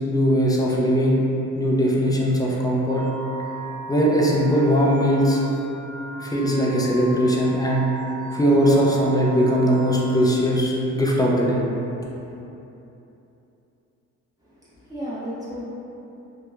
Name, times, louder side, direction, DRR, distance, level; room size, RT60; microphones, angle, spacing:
voice 1, 0.1-1.2 1.6-3.0 3.9-5.4 6.2-7.9 8.3-11.6, equal, 15° left, -4 dB, 0.3 m, -20 dB
sound 1, 2.9-10.8, right 2 dB, 45° right, 0.8 m, -38 dB
voice 2, 14.4-15.7, equal, 10° right, -11 dB, 1.0 m, -34 dB
2.9 x 2.1 x 2.3 m, 2.9 s
cardioid pair, 90°, 30 cm